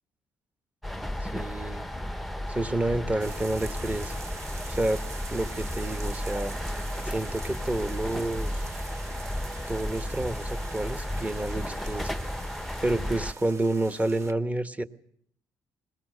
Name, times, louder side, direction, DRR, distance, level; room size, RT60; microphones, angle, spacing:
sound 1, 0.8-13.3, left 1 dB, ahead, 0.8 m, -33 dB
voice 1, 1.2-1.9 2.5-4.1 4.7-5.0 5.3-6.6 7.0-8.7 9.7-12.2 12.8-14.8, right 2 dB, 15° right, 10 dB, 1.1 m, -29 dB
sound 2, 3.2-14.3, right 4 dB, 40° right, 1.2 m, -44 dB
22.0 x 20.0 x 6.7 m, 0.66 s
cardioid pair, 100°, 8 cm